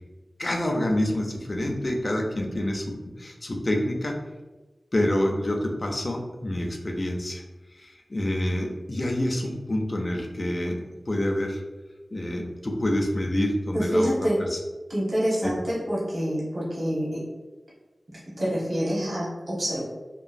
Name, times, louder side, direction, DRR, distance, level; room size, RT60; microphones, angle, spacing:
voice 1, 0.4-4.2 4.9-7.4 7.7-10.8 11.1-11.6 12.1-14.1 14.5-14.6 15.4-15.5, left 1 dB, 40° left, 1 dB, 0.4 m, -27 dB
voice 2, 13.7-14.4 14.9-17.3 18.4-19.8, equal, 70° right, -7 dB, 1.0 m, -26 dB
2.9 x 2.3 x 2.5 m, 1.2 s
wide cardioid pair, 70°, 0 cm